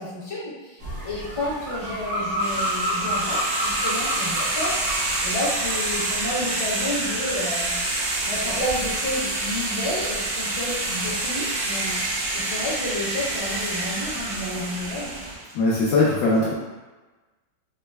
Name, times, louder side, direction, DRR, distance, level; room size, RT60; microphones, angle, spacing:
voice 1, 0.0-7.8 8.2-12.0 12.3-15.2, left 1 dB, 35° left, -8 dB, 0.9 m, -31 dB
sound 1, 0.8-15.3, equal, 85° right, 1.8 m, -33 dB
sound 2, 2.4-15.4, right 2 dB, 65° right, 0.9 m, -27 dB
voice 2, 15.5-16.5, left 2 dB, 75° left, -6 dB, 1.2 m, -20 dB
5.2 x 2.0 x 2.2 m, 1.2 s
omnidirectional pair, 2.2 m